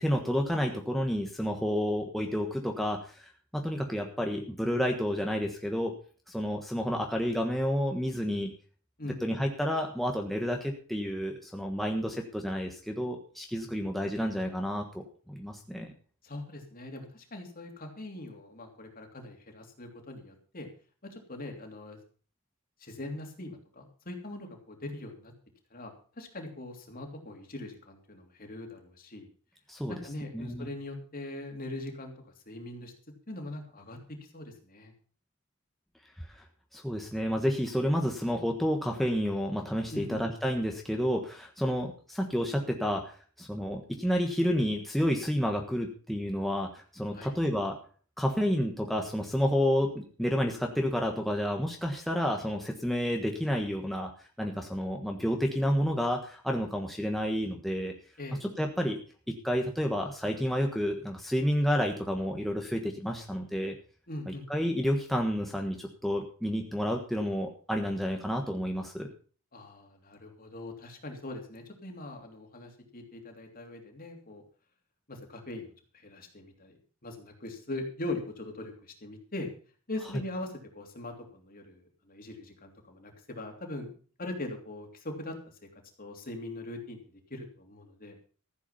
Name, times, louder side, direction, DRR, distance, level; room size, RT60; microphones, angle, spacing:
voice 1, 0.0-5.9 6.3-8.5 9.2-15.9 29.7-29.9 30.3-30.7 36.3-36.4 36.7-47.8 48.2-54.1 54.4-57.9 58.4-59.0 59.4-63.7 64.3-69.1, equal, ahead, 1 dB, 1.3 m, -30 dB
voice 2, 9.0-9.3 16.2-20.7 21.0-22.0 22.8-25.3 25.7-29.3 29.9-32.2 32.5-32.9 33.3-34.9 39.9-40.2 47.1-47.3 58.2-58.4 64.1-64.4 69.5-74.4 75.1-75.7 75.9-79.5 79.9-83.9 84.2-85.4 86.0-87.0 87.3-88.2, left 2 dB, 40° left, 3 dB, 3.0 m, -41 dB
14.5 x 8.3 x 5.7 m, 0.41 s
head